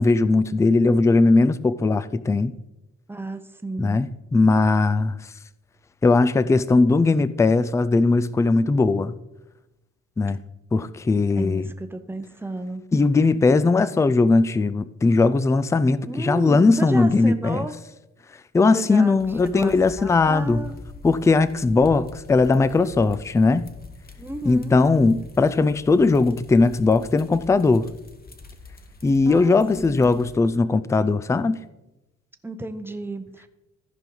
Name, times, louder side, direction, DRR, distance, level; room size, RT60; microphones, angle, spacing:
voice 1, 0.0-2.5 3.8-5.2 6.0-9.1 10.2-10.4 10.7-11.6 12.9-17.6 18.5-20.6 21.0-23.7 24.5-27.9 29.0-31.6, left 3 dB, 10° left, 0.3 m, -19 dB
voice 2, 3.1-4.0 11.4-12.9 16.0-17.7 18.7-20.8 24.2-24.8 29.2-30.1 32.4-33.5, right 2 dB, 5° right, 0.8 m, -33 dB
sound 1, 19.2-30.4, left 4 dB, 30° left, 1.1 m, -44 dB
14.5 x 5.2 x 3.9 m
cardioid pair, 90°, 30 cm